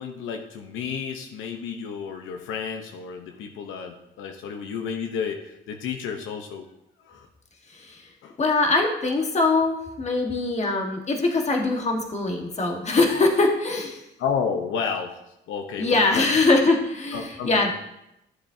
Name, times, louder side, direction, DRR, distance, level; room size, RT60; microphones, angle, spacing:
voice 1, 0.0-6.7 7.0-7.3 8.2-8.4 14.2-15.2 15.5-16.3 17.1-17.7, left 6 dB, 90° left, 5 dB, 0.9 m, -31 dB
voice 2, 7.7-8.1 8.4-14.0 15.8-17.7, left 3 dB, 35° left, 2 dB, 1.5 m, -22 dB
12.5 x 7.1 x 2.8 m, 0.84 s
cardioid pair, 90°, 20 cm